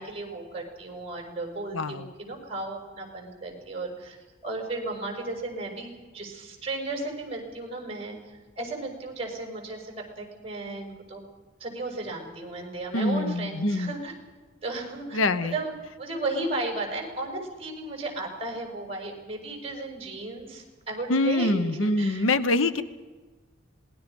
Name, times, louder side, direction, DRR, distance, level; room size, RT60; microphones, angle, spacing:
voice 1, 0.0-4.2 4.4-11.2 11.6-14.1 14.6-22.3, right 2 dB, 30° right, 1 dB, 5.9 m, -35 dB
voice 2, 1.7-2.0 12.9-13.9 15.1-15.5 21.1-22.8, left 2 dB, 85° left, 12 dB, 1.0 m, -25 dB
27.0 x 20.0 x 5.4 m, 1.3 s
head